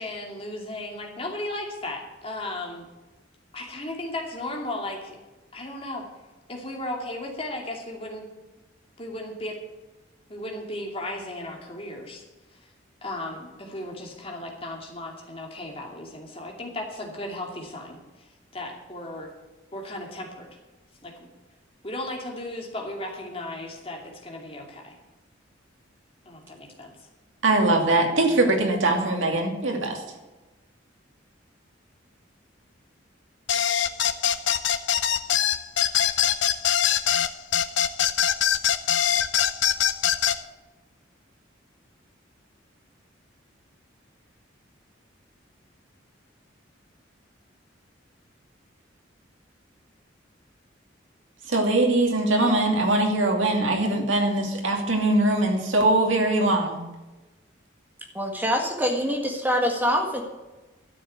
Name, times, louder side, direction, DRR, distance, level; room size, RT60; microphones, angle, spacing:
voice 1, 0.0-2.9 3.5-5.2 5.5-6.1 6.5-8.3 9.0-9.6 10.3-12.2 12.5-12.7 13.0-19.3 19.7-20.5 21.0-21.3 21.8-24.9 26.2-27.1, left 1 dB, 30° left, 0 dB, 2.6 m, -35 dB
voice 2, 27.4-30.0 51.5-56.8, right 2 dB, 85° right, 1 dB, 2.7 m, -22 dB
sound 1, 33.5-40.4, left 9 dB, 70° left, 0.7 m, -22 dB
voice 3, 58.1-60.2, equal, 10° right, 1 dB, 1.8 m, -24 dB
12.5 x 7.1 x 8.0 m, 1.1 s
head